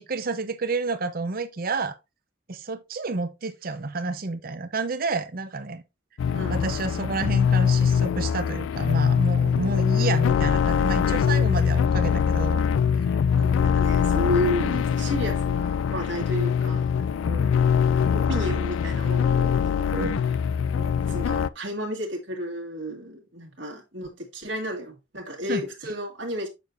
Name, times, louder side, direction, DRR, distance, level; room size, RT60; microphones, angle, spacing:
voice 1, 0.0-2.0 2.5-5.8 6.5-12.6 13.0-13.2 19.9-20.2 25.5-25.6, right 3 dB, 50° right, 0.8 m, -29 dB
sound 1, 6.2-21.5, left 7 dB, 85° left, 0.3 m, -23 dB
voice 2, 6.3-6.8 13.3-17.5 17.8-20.3 20.7-26.5, equal, 65° right, 1.8 m, -32 dB
6.9 x 6.4 x 2.6 m
head